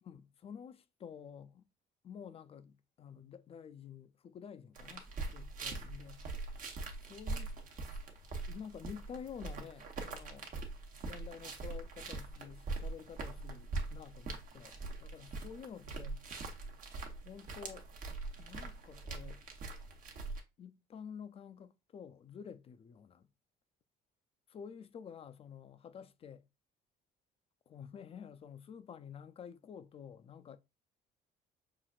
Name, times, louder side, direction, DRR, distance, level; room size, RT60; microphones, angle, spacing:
voice 1, 0.0-1.6 2.0-6.5 7.0-7.5 8.5-10.5 11.0-16.2 17.2-17.9 18.4-19.4 20.6-23.3 24.5-26.5 27.7-30.6, left 7 dB, 35° left, 0.4 m, -50 dB
sound 1, 4.7-20.4, right 3 dB, 50° right, 0.9 m, -43 dB
5.8 x 2.5 x 2.3 m
cardioid pair, 110°, 17 cm